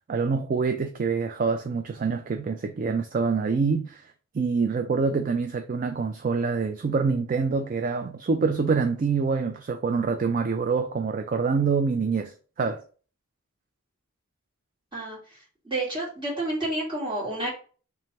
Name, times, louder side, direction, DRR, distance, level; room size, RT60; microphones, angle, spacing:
voice 1, 0.1-12.8, right 5 dB, 40° right, 0.3 m, -26 dB
voice 2, 15.7-17.5, right 1 dB, 20° right, 2.0 m, -29 dB
3.3 x 3.2 x 4.1 m
head